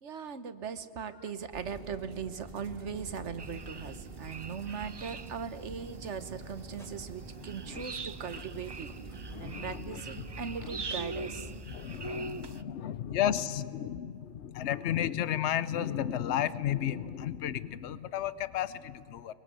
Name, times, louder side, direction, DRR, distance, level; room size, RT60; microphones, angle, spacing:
voice 1, 0.0-8.9 9.4-11.5, right 6 dB, 75° right, 11 dB, 1.3 m, -39 dB
sound 1, 1.5-11.6, right 2 dB, 50° right, 2.2 m, -46 dB
sound 2, 3.4-12.6, right 3 dB, 35° right, 0.4 m, -43 dB
sound 3, 5.4-10.5, equal, ahead, 3.4 m, -59 dB
voice 2, 9.3-10.0 11.7-19.3, left 10 dB, 70° left, 16 dB, 1.0 m, -33 dB
23.0 x 22.5 x 8.2 m, 2.3 s
omnidirectional pair, 1.2 m